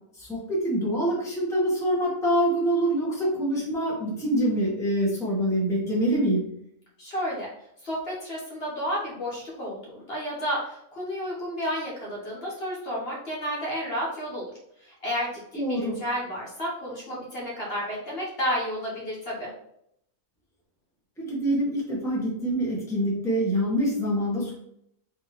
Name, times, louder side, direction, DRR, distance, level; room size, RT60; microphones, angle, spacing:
voice 1, 0.1-6.5 15.5-16.0 21.2-24.5, right 1 dB, ahead, -5 dB, 1.2 m, -25 dB
voice 2, 7.0-7.5 7.8-14.4 14.8-19.5, equal, 45° left, -5 dB, 1.4 m, -31 dB
4.0 x 3.6 x 3.0 m, 0.73 s
omnidirectional pair, 1.4 m